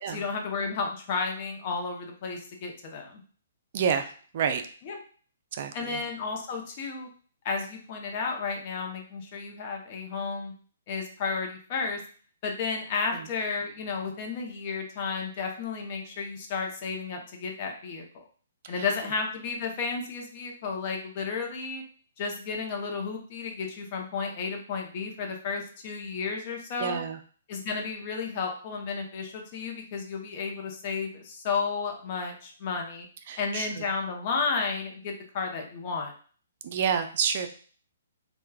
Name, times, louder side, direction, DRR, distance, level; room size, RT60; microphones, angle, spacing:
voice 1, 0.1-3.2 4.8-5.0 5.7-7.1 7.4-10.5 10.9-12.0 12.4-18.0 18.7-21.8 22.2-27.0 27.5-33.1 33.4-36.1, left 4 dB, 40° left, 2 dB, 0.6 m, -32 dB
voice 2, 3.7-4.1 4.3-4.6 5.5-6.0 13.1-13.2 18.6-18.8 26.8-27.2 33.3-33.7 36.6-37.5, right 7 dB, 50° right, 7 dB, 0.3 m, -28 dB
3.2 x 2.2 x 2.2 m, 0.43 s
hypercardioid pair, 140°, 0 cm